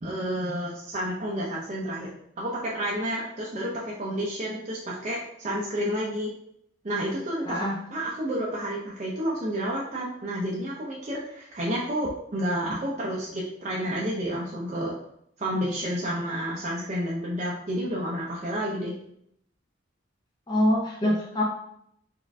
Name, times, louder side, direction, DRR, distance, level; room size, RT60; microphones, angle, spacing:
voice 1, 0.0-2.1 2.4-6.3 6.8-14.9 15.4-18.9, equal, 35° right, -4 dB, 0.6 m, -30 dB
voice 2, 7.5-7.8 20.5-21.4, left 1 dB, 25° left, -3 dB, 0.6 m, -24 dB
4.2 x 2.5 x 3.5 m, 0.72 s
head